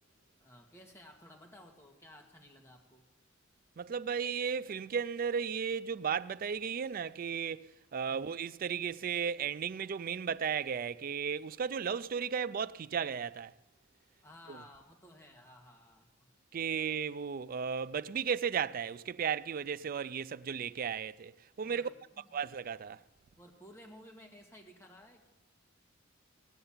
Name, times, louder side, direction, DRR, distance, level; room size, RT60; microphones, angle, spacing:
voice 1, 0.4-3.1 8.1-8.4 14.2-16.3 21.6-21.9 22.2-22.4 23.4-25.3, left 1 dB, 15° left, 1.9 m, -55 dB
voice 2, 3.8-13.5 14.5-14.6 16.5-21.3 21.6-21.9 22.3-23.0, right 7 dB, 45° right, 0.4 m, -35 dB
17.5 x 6.7 x 8.8 m
head